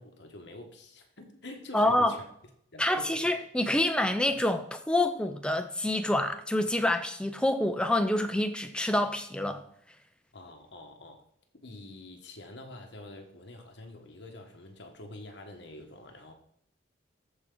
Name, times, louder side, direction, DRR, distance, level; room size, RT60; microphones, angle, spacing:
voice 1, 0.0-2.2 2.7-3.2 10.3-11.2 11.6-16.3, left 2 dB, 60° left, 1.4 m, -46 dB
voice 2, 1.7-2.1 2.8-9.6, left 1 dB, 5° left, 0.6 m, -27 dB
13.5 x 4.6 x 3.9 m
head